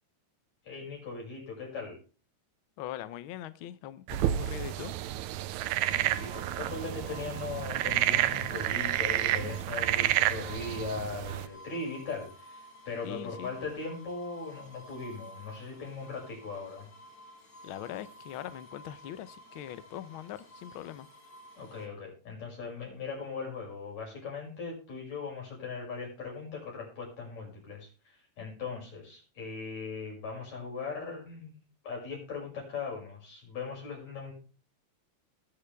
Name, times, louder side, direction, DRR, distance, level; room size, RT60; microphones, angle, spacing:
voice 1, 0.6-2.0 5.9-16.9 21.6-31.6 31.8-34.3, left 4 dB, 70° left, -2 dB, 7.5 m, -39 dB
voice 2, 2.8-5.0 13.0-13.6 17.6-21.1, left 12 dB, 85° left, 14 dB, 1.1 m, -41 dB
sound 1, 4.1-11.5, right 13 dB, 85° right, 2.1 m, -30 dB
sound 2, 5.7-21.9, equal, 35° left, 2.7 m, -51 dB
20.5 x 7.1 x 3.4 m, 0.36 s
omnidirectional pair, 3.4 m